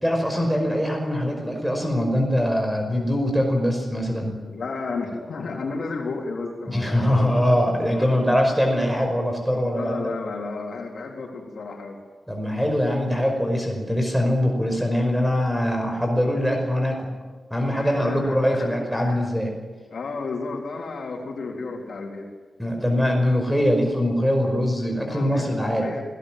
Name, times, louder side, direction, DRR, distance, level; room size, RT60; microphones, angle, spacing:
voice 1, 0.0-4.4 6.7-9.9 12.3-17.1 17.5-19.5 22.6-25.9, equal, 5° right, 2 dB, 5.5 m, -22 dB
voice 2, 4.5-7.6 7.9-8.1 9.7-12.0 17.8-19.3 19.9-22.3 25.1-26.0, left 3 dB, 70° left, 0 dB, 3.7 m, -33 dB
27.0 x 18.0 x 7.7 m, 1.4 s
wide cardioid pair, 100°, 0 cm